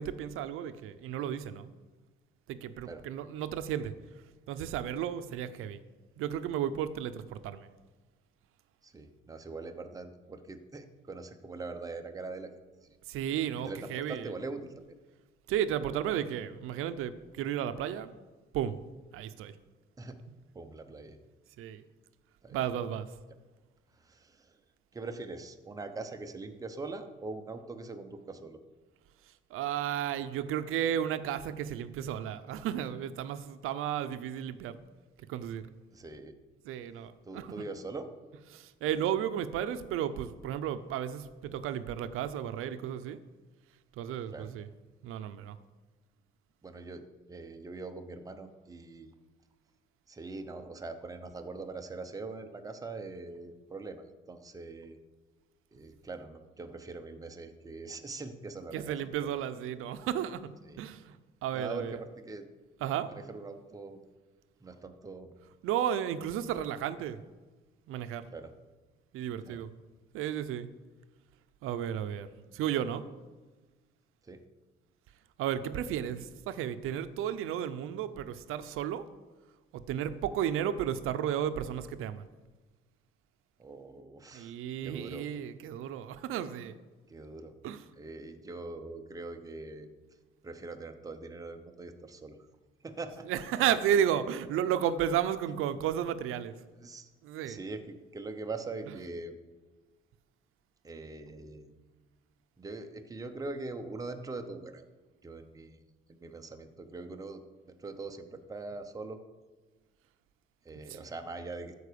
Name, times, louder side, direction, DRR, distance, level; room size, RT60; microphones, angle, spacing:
voice 1, 0.0-1.7 2.5-3.9 4.5-5.8 6.2-7.7 13.1-14.3 15.5-18.1 18.5-18.8 19.1-19.5 21.6-21.8 22.5-23.1 29.5-34.8 35.3-35.6 36.7-37.5 38.5-43.2 44.0-44.7 45.0-45.6 58.7-60.4 60.8-61.2 61.4-62.0 62.8-63.1 65.6-67.2 67.9-68.2 69.1-69.7 70.1-70.7 71.6-72.3 72.5-73.0 75.4-79.0 79.9-82.3 84.3-86.8 87.6-87.8 93.3-96.5 97.2-97.6 110.9-111.0, right 10 dB, 80° right, 12 dB, 0.7 m, -33 dB
voice 2, 8.8-12.5 12.8-13.0 13.6-14.9 20.0-20.2 20.5-21.2 22.4-22.6 24.0-24.6 24.9-28.6 35.9-36.4 37.3-38.1 44.3-44.5 46.6-49.1 50.1-55.0 55.7-59.3 60.6-60.8 61.5-62.5 63.1-64.0 64.6-65.4 68.3-68.5 69.4-69.6 74.2-74.4 83.6-84.5 84.8-85.3 87.1-87.6 88.0-89.9 90.4-92.4 92.8-93.3 96.7-97.1 97.4-99.4 100.8-101.8 102.6-104.9 105.2-105.8 106.1-109.2 110.6-111.8, right 3 dB, 15° right, 6 dB, 0.8 m, -42 dB
13.0 x 4.7 x 6.8 m, 1.3 s
cardioid pair, 155°, 21 cm